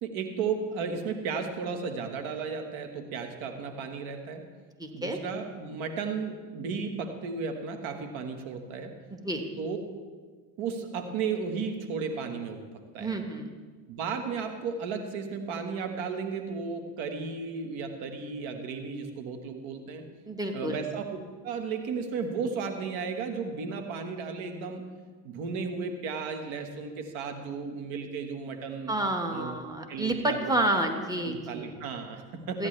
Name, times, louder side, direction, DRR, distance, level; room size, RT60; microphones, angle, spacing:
voice 1, 0.0-4.4 4.9-8.9 9.6-9.8 10.6-12.7 12.9-13.2 13.9-20.1 20.5-21.0 21.4-24.9 25.2-28.9 29.3-29.5 29.9-30.5 31.0-32.7, right 5 dB, 70° right, 5 dB, 1.6 m, -34 dB
voice 2, 4.8-5.2 9.1-9.4 13.0-13.5 20.3-20.8 28.9-31.7 32.6-32.7, right 1 dB, 5° right, 4 dB, 1.5 m, -29 dB
15.0 x 9.6 x 3.3 m, 1.5 s
hypercardioid pair, 65°, 49 cm